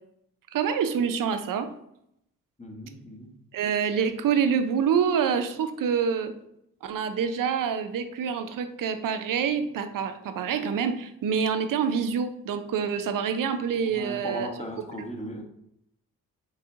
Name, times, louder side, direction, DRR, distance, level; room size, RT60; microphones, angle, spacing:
voice 1, 0.5-1.7 3.5-6.3 6.8-14.5, right 7 dB, 55° right, 9 dB, 0.6 m, -26 dB
voice 2, 2.6-3.3 13.9-15.4, equal, 15° left, 1 dB, 1.1 m, -37 dB
4.8 x 3.5 x 2.7 m, 0.76 s
hypercardioid pair, 45°, 39 cm